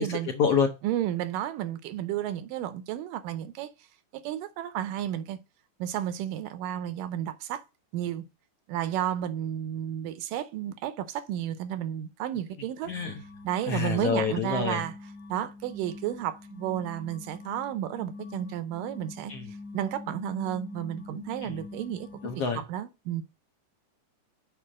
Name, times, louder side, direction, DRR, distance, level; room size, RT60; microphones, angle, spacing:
voice 1, 0.0-0.7 12.9-13.1 13.7-14.8 19.3-19.5 21.4-21.5 22.2-22.6, left 6 dB, 70° left, 1.4 m, -27 dB
voice 2, 0.8-3.7 4.1-5.4 5.8-7.6 7.9-8.3 8.7-12.9 13.4-14.9 15.3-19.3 19.7-22.1 22.4-23.2, right 11 dB, 85° right, 2.4 m, -32 dB
sound 1, 12.9-22.6, left 3 dB, 35° left, 1.4 m, -44 dB
6.9 x 5.0 x 6.2 m
omnidirectional pair, 3.8 m